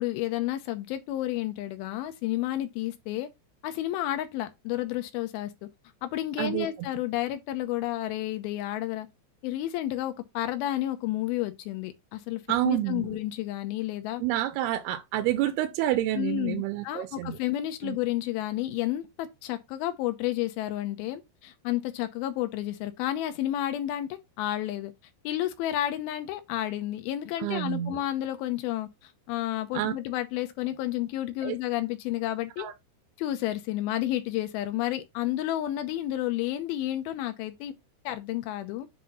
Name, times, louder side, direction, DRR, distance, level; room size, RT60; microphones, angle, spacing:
voice 1, 0.0-3.3 3.6-5.7 6.0-9.1 9.4-14.2 16.2-24.9 25.2-32.7 33.2-37.7 38.1-38.9, left 14 dB, 75° left, 2.5 m, -31 dB
voice 2, 12.5-13.2 14.2-17.4 17.8-18.0 27.4-28.0 29.7-29.9 31.4-31.6 32.6-32.7, right 14 dB, 80° right, 2.4 m, -28 dB
7.7 x 2.9 x 5.5 m
omnidirectional pair, 4.9 m